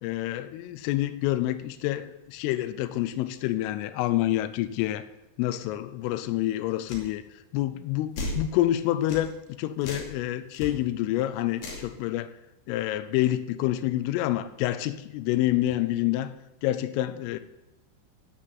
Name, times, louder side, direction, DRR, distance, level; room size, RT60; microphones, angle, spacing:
voice 1, 0.0-5.1 5.4-7.2 7.5-9.3 9.6-12.3 12.7-16.3 16.6-17.4, left 14 dB, 85° left, 12 dB, 3.3 m, -27 dB
sound 1, 6.9-7.1 8.2-8.4 9.1-9.3 9.8-10.1 10.5-10.7 11.6-11.9, left 1 dB, 55° left, 4.2 m, -34 dB
16.5 x 5.8 x 7.6 m, 0.96 s
omnidirectional pair, 5.7 m